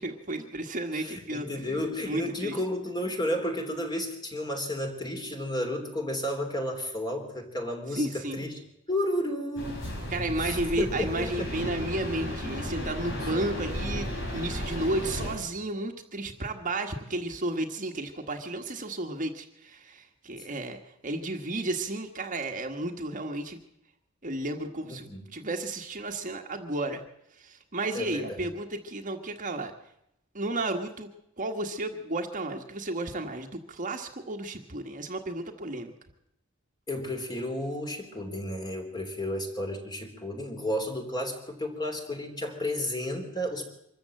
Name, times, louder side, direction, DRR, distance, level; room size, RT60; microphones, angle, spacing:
voice 1, 0.0-2.6 7.9-8.4 10.1-23.6 24.2-27.0 27.4-29.7 30.3-31.1 31.4-35.9, right 2 dB, 40° right, 4 dB, 1.5 m, -33 dB
voice 2, 0.9-8.6 8.9-9.8 10.4-11.5 13.2-13.3 24.8-25.2 27.9-28.5 36.9-43.6, left 1 dB, 20° left, 4 dB, 3.4 m, -32 dB
sound 1, 9.6-15.3, equal, 65° left, 5.7 m, -34 dB
24.5 x 14.0 x 7.8 m, 0.81 s
head